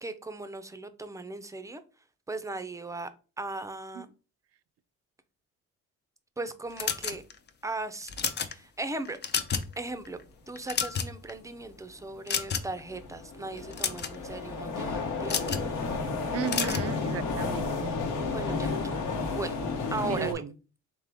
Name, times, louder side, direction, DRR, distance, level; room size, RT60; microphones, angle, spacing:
voice 1, 0.0-1.8 2.3-3.1 3.4-4.1 6.4-7.2 7.6-8.1 8.4-9.2 9.8-10.2 10.5-15.5 18.3-18.9 19.3-19.5 19.9-20.4, right 2 dB, 10° right, 0.5 m, -37 dB
sound 1, 6.8-7.5 8.0-8.5 9.0-9.7 10.0-10.2 10.6-11.3 12.3-12.8 13.6-14.1 15.2-15.7 16.5-16.9, left 6 dB, 35° left, 0.5 m, -30 dB
sound 2, 11.7-11.8 12.4-20.3, left 4 dB, 75° left, 1.0 m, -32 dB
voice 2, 16.3-18.0 20.1-20.5, right 9 dB, 55° right, 0.5 m, -35 dB
3.7 x 3.4 x 3.4 m
cardioid pair, 90°, 30 cm